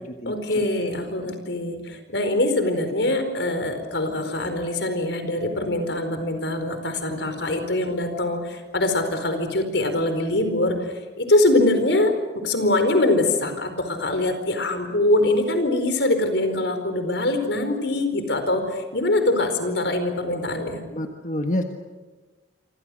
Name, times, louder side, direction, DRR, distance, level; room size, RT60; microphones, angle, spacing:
voice 1, 0.3-12.1 12.4-20.8, left 2 dB, 80° left, 7 dB, 4.7 m, -23 dB
voice 2, 20.9-21.6, left 1 dB, 45° left, 4 dB, 1.6 m, -26 dB
27.5 x 26.5 x 6.4 m, 1.3 s
head